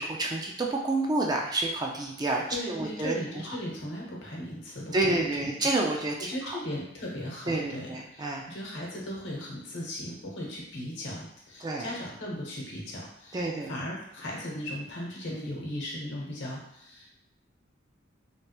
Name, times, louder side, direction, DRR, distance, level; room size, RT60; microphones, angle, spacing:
voice 1, 0.0-3.6 4.9-6.6 7.5-8.4 11.6-11.9 13.3-13.7, right 2 dB, 20° right, 0 dB, 0.3 m, -29 dB
voice 2, 2.5-5.5 6.2-17.1, left 1 dB, 60° left, -3 dB, 1.0 m, -37 dB
3.2 x 2.5 x 2.9 m, 0.78 s
head